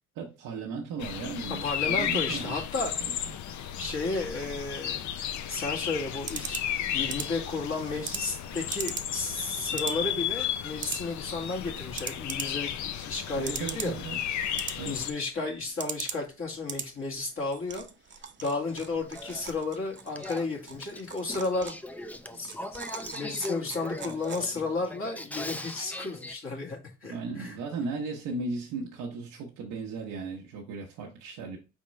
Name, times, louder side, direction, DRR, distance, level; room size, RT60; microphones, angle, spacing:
voice 1, 0.2-2.6 3.0-3.4 13.3-14.2 14.8-15.0 27.1-31.6, right 4 dB, 90° right, 0.9 m, -36 dB
sound 1, 1.0-15.1, left 9 dB, 70° left, 0.5 m, -34 dB
voice 2, 1.6-2.9 3.7-5.0 5.5-14.0 14.8-17.9 18.4-21.7 22.3-27.6, left 3 dB, 45° left, 1.7 m, -33 dB
sound 2, 5.4-24.8, right 6 dB, 40° right, 0.7 m, -42 dB
Male speech man speaking / Female speech woman speaking / Conversation, 18.7-26.3, left 1 dB, 5° left, 0.4 m, -40 dB
4.3 x 3.6 x 3.1 m
cardioid pair, 90°, 30 cm